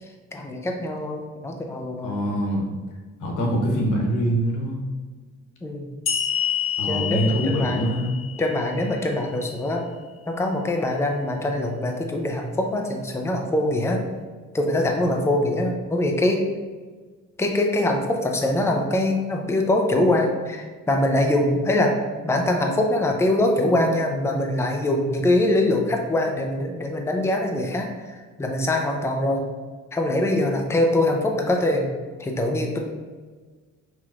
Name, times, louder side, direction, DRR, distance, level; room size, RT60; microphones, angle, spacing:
voice 1, 0.3-2.2 5.6-6.0 6.8-7.8 8.4-9.8 10.3-14.1 14.5-16.5 17.4-22.0 22.2-29.4 29.9-31.9 32.2-32.8, left 1 dB, 10° left, 2 dB, 0.5 m, -23 dB
voice 2, 2.0-2.7 3.2-4.8 6.8-8.1, equal, 85° left, 0 dB, 1.0 m, -24 dB
sound 1, 6.1-9.4, left 8 dB, 45° left, 0.8 m, -28 dB
5.5 x 3.1 x 2.4 m, 1.4 s
cardioid pair, 90°, 30 cm